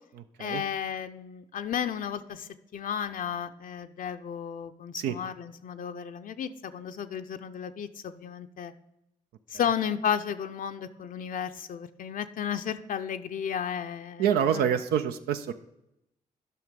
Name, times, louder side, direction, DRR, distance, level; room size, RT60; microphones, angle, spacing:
voice 1, 0.4-8.7 9.5-14.7, left 8 dB, 60° left, 8 dB, 0.5 m, -33 dB
voice 2, 14.2-15.5, right 8 dB, 85° right, 9 dB, 0.4 m, -26 dB
9.3 x 5.7 x 5.1 m, 0.86 s
supercardioid pair, 50°, 16 cm